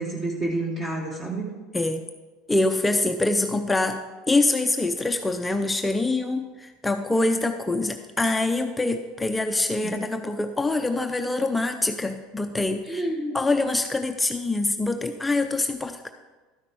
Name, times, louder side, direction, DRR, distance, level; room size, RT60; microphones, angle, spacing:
voice 1, 0.0-1.5 9.8-9.9 12.9-13.4, right 2 dB, 20° right, -1 dB, 1.7 m, -29 dB
voice 2, 2.5-13.0 13.3-16.1, left 2 dB, 10° left, 6 dB, 0.5 m, -25 dB
12.5 x 5.8 x 4.8 m, 1.3 s
supercardioid pair, 100°, 0 cm